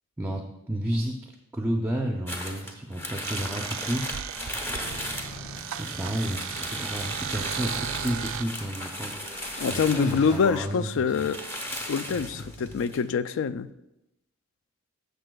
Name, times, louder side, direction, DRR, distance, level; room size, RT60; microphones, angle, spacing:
voice 1, 0.2-4.1 5.8-9.2 9.7-11.3, right 1 dB, 10° right, 2 dB, 0.5 m, -31 dB
sound 1, 2.3-10.5 10.8-10.9 11.1-13.0, equal, 10° left, 0.9 m, -36 dB
sound 2, 3.2-8.4, right 10 dB, 65° right, 0.3 m, -36 dB
sound 3, 4.8-12.8, left 1 dB, 35° left, 1.8 m, -45 dB
voice 2, 9.6-11.4 11.9-13.7, left 6 dB, 65° left, 14 dB, 0.3 m, -25 dB
14.0 x 6.8 x 2.3 m, 0.89 s
head